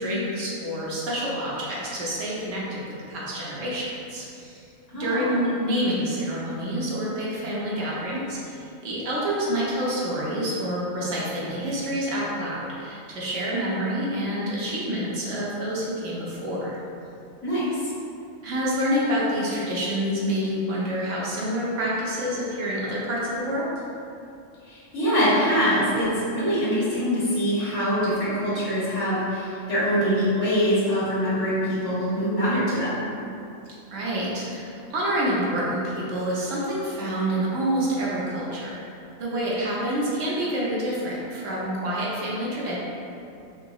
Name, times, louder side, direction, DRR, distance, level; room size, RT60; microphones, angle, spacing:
voice 1, 0.0-2.8 3.1-4.6 4.9-16.7 18.4-23.7 33.9-38.7 39.2-42.8, equal, 70° right, -6 dB, 1.0 m, -27 dB
voice 2, 4.9-5.3 17.4-17.9 24.7-33.0, equal, 65° left, -10 dB, 1.6 m, -24 dB
3.7 x 2.9 x 2.2 m, 2.6 s
omnidirectional pair, 1.4 m